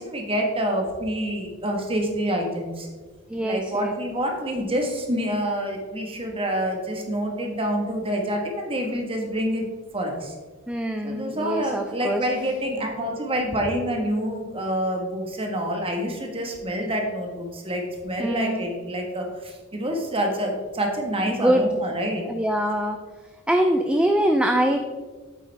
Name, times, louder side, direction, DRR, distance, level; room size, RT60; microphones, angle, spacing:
voice 1, 0.0-2.9 3.4-9.6 9.9-10.3 11.0-22.3, equal, 25° right, 2 dB, 1.5 m, -27 dB
voice 2, 3.3-3.9 10.7-12.3 18.2-18.6 21.2-21.7 22.2-23.0 23.5-24.8, right 1 dB, 5° right, 4 dB, 0.4 m, -23 dB
8.6 x 8.5 x 3.5 m, 1.4 s
head